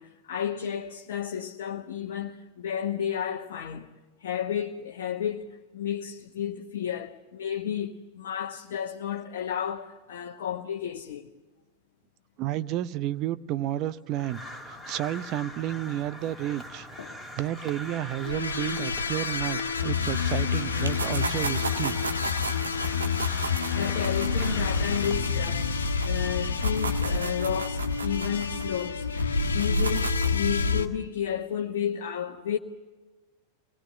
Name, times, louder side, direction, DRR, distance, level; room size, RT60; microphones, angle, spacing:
voice 1, 0.0-3.9 4.2-11.3 17.0-17.2 23.6-25.7 26.0-32.6, left 9 dB, 55° left, 1.2 m, -32 dB
voice 2, 12.4-16.9 17.4-21.9, right 13 dB, 40° right, 0.8 m, -31 dB
Crow, 14.1-25.2, left 1 dB, 5° right, 3.1 m, -42 dB
sound 1, 18.2-30.9, left 5 dB, 70° left, 1.5 m, -28 dB
sound 2, 20.8-26.1 26.4-30.5, right 4 dB, 75° right, 1.6 m, -36 dB
26.5 x 20.5 x 6.8 m
figure-of-eight pair, 90°, 0 cm